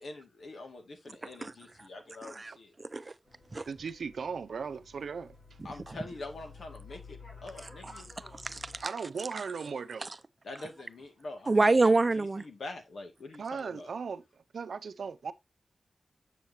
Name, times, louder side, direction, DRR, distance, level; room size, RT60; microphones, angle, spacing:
voice 1, 0.0-2.7 5.6-8.1 10.5-11.8 12.1-13.9, left 2 dB, 80° left, 2.0 m, -45 dB
voice 2, 2.2-2.5 2.8-3.1 3.5-3.7 5.9-6.0 7.8-7.9 8.3-8.8 10.0-10.1 11.5-12.4, right 3 dB, 35° right, 0.6 m, -27 dB
sound 1, 3.2-8.8, left 4 dB, 65° left, 4.1 m, -52 dB
voice 3, 3.7-5.4 8.8-10.1 13.4-14.2 14.5-15.3, right 5 dB, 85° right, 0.6 m, -37 dB
7.5 x 7.3 x 2.8 m
wide cardioid pair, 80°, 0 cm